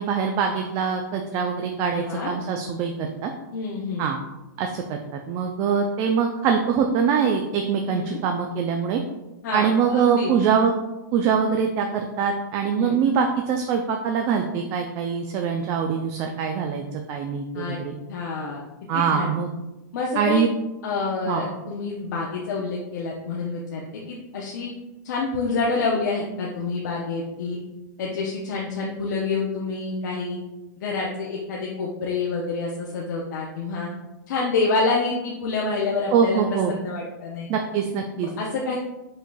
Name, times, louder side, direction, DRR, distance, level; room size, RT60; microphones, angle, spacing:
voice 1, 0.0-3.3 4.0-4.2 4.6-5.0 5.3-9.0 9.5-10.7 11.1-17.9 18.9-19.5 20.2-20.5 21.3-21.4 36.1-36.7 37.5-38.3, right 6 dB, 35° right, 3 dB, 0.4 m, -23 dB
voice 2, 1.9-2.3 3.5-4.1 7.9-8.2 9.4-10.3 12.7-13.0 17.5-17.8 18.1-18.6 18.9-19.3 19.9-20.4 20.8-24.7 25.0-27.6 28.0-30.4 30.8-33.9 34.3-37.5 38.4-38.8, left 4 dB, 65° left, -2 dB, 0.7 m, -27 dB
5.1 x 3.8 x 2.3 m, 1.0 s
hypercardioid pair, 140°, 10 cm